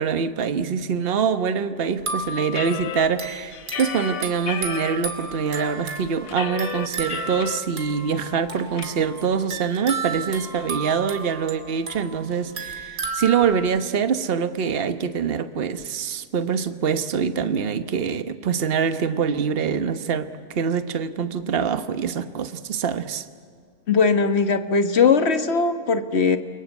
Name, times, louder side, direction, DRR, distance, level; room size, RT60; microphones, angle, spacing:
voice 1, 0.0-23.2, right 6 dB, 40° right, 10 dB, 1.2 m, -24 dB
sound 1, 1.9-13.8, right 4 dB, 85° right, 3.0 m, -34 dB
sound 2, 2.5-5.0 5.5-5.6 5.9-7.6 7.9-8.0 8.3-8.8, left 8 dB, 60° left, 1.4 m, -32 dB
voice 2, 23.9-26.4, left 5 dB, 45° left, 9 dB, 1.5 m, -19 dB
29.5 x 23.5 x 8.3 m, 2.1 s
omnidirectional pair, 1.7 m